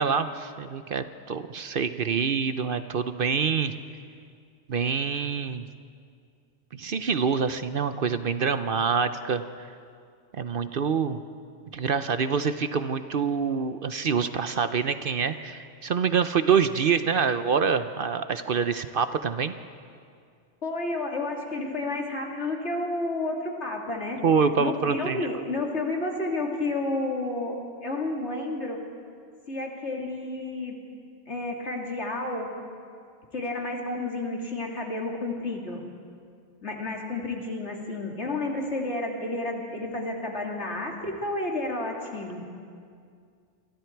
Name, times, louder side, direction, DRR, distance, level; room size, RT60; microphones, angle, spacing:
voice 1, 0.0-3.7 4.7-5.6 6.7-9.7 10.3-11.2 11.7-19.5 24.2-25.3, right 6 dB, 55° right, 11 dB, 0.9 m, -26 dB
voice 2, 20.6-24.2 24.6-28.8 29.5-30.8 31.3-32.5 33.3-35.8 36.6-42.4, left 2 dB, 70° left, 0 dB, 3.1 m, -31 dB
28.5 x 24.0 x 4.6 m, 2.2 s
omnidirectional pair, 1.2 m